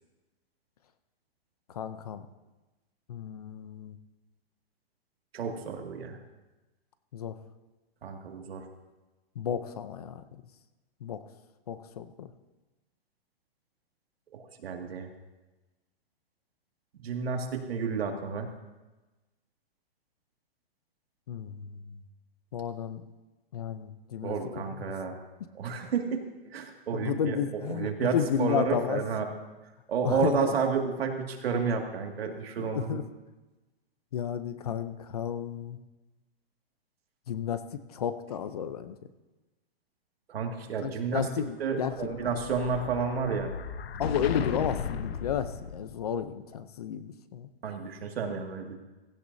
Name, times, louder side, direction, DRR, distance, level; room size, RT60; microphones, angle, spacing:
voice 1, 1.7-2.3 3.1-4.0 7.1-7.4 9.4-10.4 11.0-11.2 11.7-12.3 21.3-22.0 22.5-23.1 23.5-24.3 24.7-24.9 26.9-29.0 30.0-30.6 32.6-33.1 34.1-35.8 37.3-39.0 40.8-42.6 44.0-47.5, left 8 dB, 40° left, 11 dB, 0.6 m, -32 dB
voice 2, 5.3-6.2 8.0-8.7 14.3-15.1 16.9-18.5 24.2-25.2 25.5-26.2 26.5-27.4 27.7-29.2 29.9-33.0 40.3-41.3 41.6-43.5 47.6-48.8, right 5 dB, 75° right, 2 dB, 2.1 m, -31 dB
Explosion, 41.6-46.2, left 7 dB, 80° left, 1.0 m, -36 dB
16.0 x 15.0 x 2.7 m, 1.1 s
hypercardioid pair, 180°, 30 cm